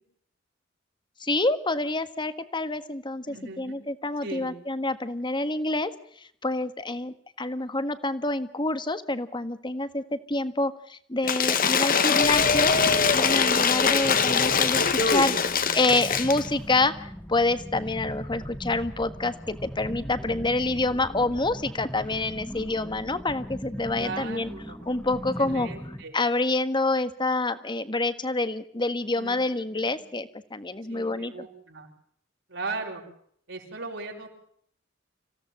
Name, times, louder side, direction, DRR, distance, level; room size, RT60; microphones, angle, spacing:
voice 1, 1.2-5.9 6.4-24.5 24.9-25.7 26.1-31.5, left 2 dB, 25° left, 12 dB, 1.6 m, -27 dB
voice 2, 3.3-3.8 4.2-4.5 13.3-13.7 24.0-24.9 25.4-26.2 29.1-29.4 29.7-30.1 30.9-31.9 32.5-33.0 33.5-34.3, right 3 dB, 70° right, -1 dB, 6.1 m, -38 dB
Cheering / Applause / Crowd, 11.2-16.5, left 6 dB, 50° left, 1.7 m, -22 dB
sound 1, 12.2-26.0, equal, 5° left, 1.6 m, -39 dB
27.0 x 17.0 x 7.5 m, 0.66 s
head